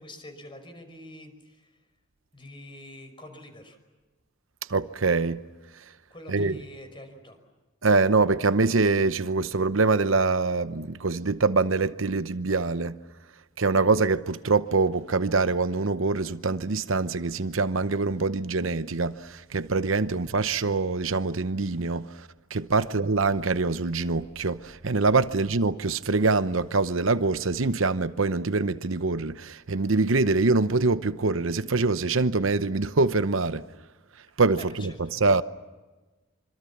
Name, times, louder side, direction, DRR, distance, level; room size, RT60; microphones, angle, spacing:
voice 1, 0.0-1.8 2.3-3.8 6.1-7.4 20.0-20.1 22.8-22.9 25.2-25.3 34.6-35.2, left 1 dB, 25° left, 5.6 m, -46 dB
voice 2, 4.7-5.4 6.3-6.5 7.8-13.0 13.6-33.6 34.4-35.4, right 3 dB, 75° right, 0.9 m, -24 dB
26.0 x 26.0 x 7.3 m
head